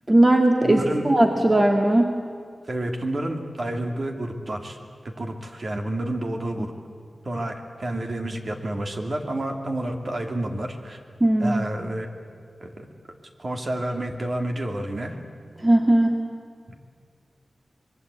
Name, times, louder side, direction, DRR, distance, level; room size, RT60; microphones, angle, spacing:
voice 1, 0.1-2.2 11.2-11.6 15.6-16.2, right 1 dB, 25° right, 2 dB, 1.8 m, -18 dB
voice 2, 0.6-1.0 2.6-4.8 5.0-6.7 7.2-11.0 11.4-12.1 12.6-12.9 13.4-15.2 16.7-16.8, right 1 dB, 45° right, 3 dB, 2.9 m, -29 dB
25.5 x 23.0 x 8.5 m, 2.1 s
wide cardioid pair, 110°, 0 cm